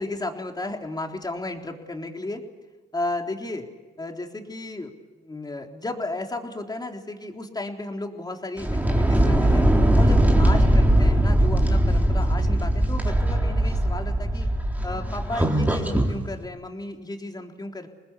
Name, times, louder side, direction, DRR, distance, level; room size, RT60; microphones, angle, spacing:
voice 1, 0.0-2.4 2.9-3.7 4.0-4.9 5.2-9.6 10.0-14.5 14.8-17.9, left 2 dB, 20° left, 3 dB, 3.8 m, -33 dB
sound 1, 8.6-16.1, right 1 dB, 10° right, 4.0 m, -20 dB
27.5 x 20.0 x 8.5 m, 1.3 s
cardioid pair, 85°, 18 cm